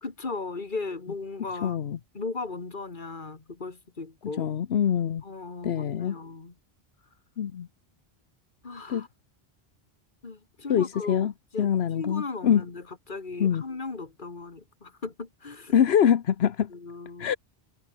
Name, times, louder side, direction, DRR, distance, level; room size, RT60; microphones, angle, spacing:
voice 1, 0.0-1.8 2.1-4.5 5.2-6.5 8.6-9.1 10.2-12.8 13.1-15.7 16.7-17.3, left 3 dB, 50° left, 2.2 m, -37 dB
voice 2, 1.6-2.0 4.4-5.2 5.6-6.1 7.4-7.7 8.9-9.1 10.7-11.3 11.6-12.6 13.4-13.6 15.7-16.7 17.2-17.4, left 9 dB, 80° left, 1.1 m, -24 dB
omnidirectional pair, 1.0 m